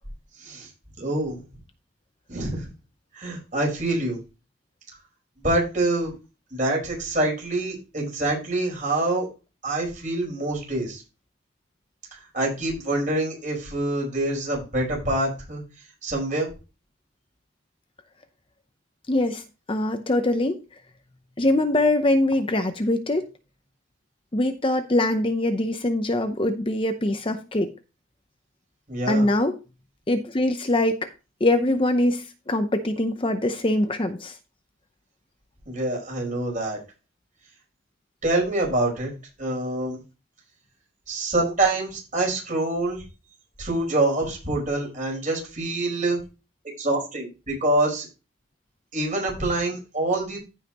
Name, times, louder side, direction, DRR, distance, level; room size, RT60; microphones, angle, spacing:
voice 1, 1.0-1.4 2.3-2.7 3.1-4.2 5.4-6.1 6.5-9.3 9.6-11.0 12.1-15.6 16.0-16.5 28.9-29.3 35.6-36.8 38.2-39.1 39.4-40.0 41.1-43.0 43.6-46.2 46.8-48.1 48.9-50.4, right 2 dB, 35° right, -1 dB, 5.1 m, -26 dB
voice 2, 19.1-19.4 19.7-20.6 21.4-23.3 24.3-27.7 29.1-29.6 30.1-31.1 31.4-34.4, left 1 dB, 25° left, 7 dB, 0.7 m, -23 dB
15.0 x 5.7 x 2.9 m, 0.30 s
head